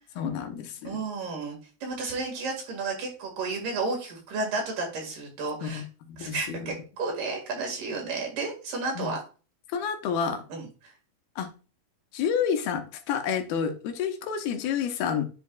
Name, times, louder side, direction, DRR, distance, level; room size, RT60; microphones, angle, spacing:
voice 1, 0.2-1.0 5.6-5.8 6.1-6.7 9.0-9.1 9.7-10.4 11.4-11.5 12.1-15.2, left 7 dB, 85° left, 2.7 m, -29 dB
voice 2, 0.8-5.9 6.2-9.2 10.5-10.9, right 3 dB, 65° right, 3.3 m, -32 dB
10.5 x 4.7 x 2.3 m
omnidirectional pair, 4.3 m